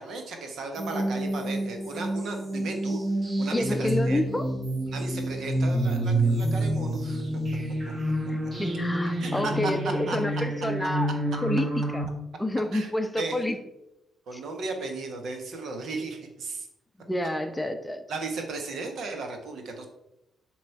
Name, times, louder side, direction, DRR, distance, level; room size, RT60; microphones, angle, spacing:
voice 1, 0.0-3.0 3.4-4.2 4.9-7.2 9.2-9.7 10.1-10.2 12.7-12.9 13.2-13.4 14.3-16.7 18.1-19.9, right 3 dB, 55° right, 4 dB, 1.1 m, -35 dB
sound 1, 0.8-12.0, right 1 dB, 35° right, 1.9 m, -28 dB
voice 2, 3.5-4.5 8.3-11.1 11.4-12.0 12.4-13.6 17.1-18.0, left 1 dB, 10° left, 7 dB, 0.7 m, -29 dB
7.3 x 3.1 x 5.5 m, 0.89 s
figure-of-eight pair, 40°, 0 cm